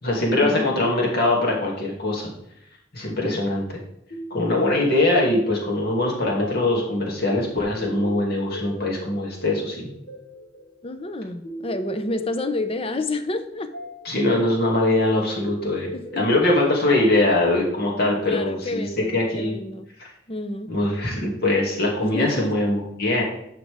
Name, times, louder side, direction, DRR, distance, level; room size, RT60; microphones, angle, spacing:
voice 1, 0.0-2.3 2.9-3.8 4.3-9.9 14.0-18.9 19.1-19.6 20.0-20.1 20.7-23.2, left 2 dB, 60° left, -1 dB, 2.6 m, -22 dB
sound 1, 4.1-18.9, equal, 75° left, 2.6 m, -39 dB
voice 2, 10.8-13.7 15.9-16.4 18.3-19.9 20.3-20.7 22.0-22.5, left 2 dB, 30° left, 10 dB, 0.7 m, -29 dB
10.5 x 6.1 x 3.6 m, 0.77 s
head